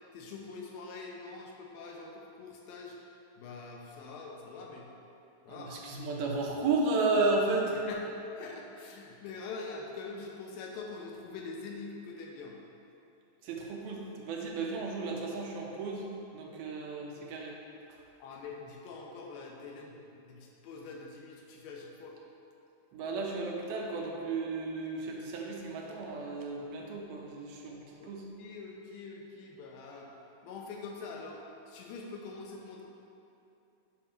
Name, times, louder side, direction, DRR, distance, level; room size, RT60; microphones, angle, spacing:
voice 1, 0.1-4.9 5.4-5.9 7.7-12.6 18.2-22.2 28.0-30.1 30.4-31.4 31.7-32.8, left 4 dB, 80° left, -1 dB, 2.6 m, -44 dB
voice 2, 5.5-7.7 13.4-16.0 16.3-17.6 22.9-28.3, right 3 dB, 90° right, -2 dB, 2.8 m, -33 dB
7.9 x 4.3 x 5.9 m, 2.9 s
omnidirectional pair, 4.2 m